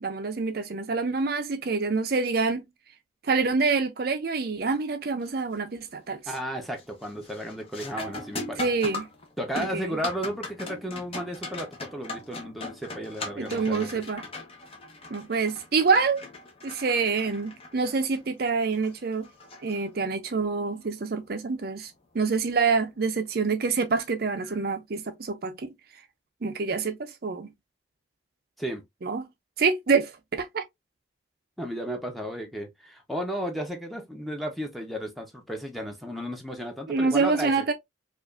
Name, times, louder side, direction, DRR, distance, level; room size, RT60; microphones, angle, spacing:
voice 1, 0.0-2.6 3.2-6.2 8.6-9.1 9.5-10.0 13.4-14.2 15.1-16.2 16.6-19.3 19.6-25.7 26.4-27.5 29.0-29.3 29.6-30.6 36.9-37.7, right 4 dB, 50° right, 0.5 m, -26 dB
sound 1, 5.2-5.6 6.0-6.4 6.8-20.3 22.8-22.9 23.7-24.0, left 2 dB, 30° left, 0.9 m, -39 dB
voice 2, 6.3-8.6 9.4-14.0 28.6-28.8 31.6-37.6, equal, ahead, 0.8 m, -34 dB
4.9 x 2.5 x 2.4 m
head